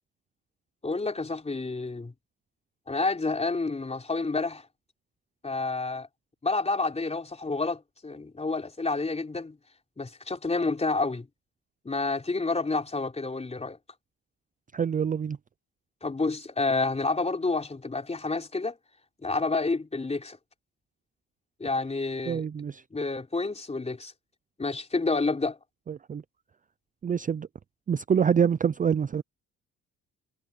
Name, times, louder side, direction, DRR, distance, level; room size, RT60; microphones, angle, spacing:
voice 1, 0.8-2.1 2.9-4.7 5.4-6.1 6.4-9.6 10.0-11.3 11.9-13.8 16.0-18.8 19.2-20.4 21.6-22.5 22.9-24.1 24.6-25.6, left 3 dB, 20° left, 3.8 m, -29 dB
voice 2, 14.7-15.4 22.3-22.8 25.9-26.2 27.0-27.5 27.9-29.2, right 7 dB, 25° right, 0.5 m, -26 dB
cardioid pair, 90°, 30 cm